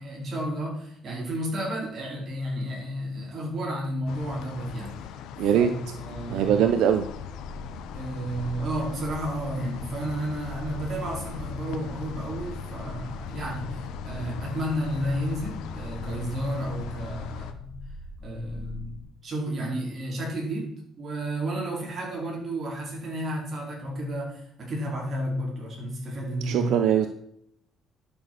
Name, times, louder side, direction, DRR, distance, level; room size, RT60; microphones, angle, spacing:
voice 1, 0.0-5.1 5.5-6.5 7.9-17.8 18.2-26.8, right 1 dB, 35° right, -2 dB, 4.6 m, -32 dB
sound 1, 4.1-17.5, left 8 dB, 85° left, 1.0 m, -39 dB
voice 2, 5.4-5.7 6.3-7.1 26.5-27.1, right 9 dB, 75° right, 7 dB, 0.9 m, -21 dB
sound 2, 18.3-19.0, equal, 15° left, 2.5 m, -42 dB
11.0 x 6.5 x 6.7 m, 0.69 s
cardioid pair, 140°, 0 cm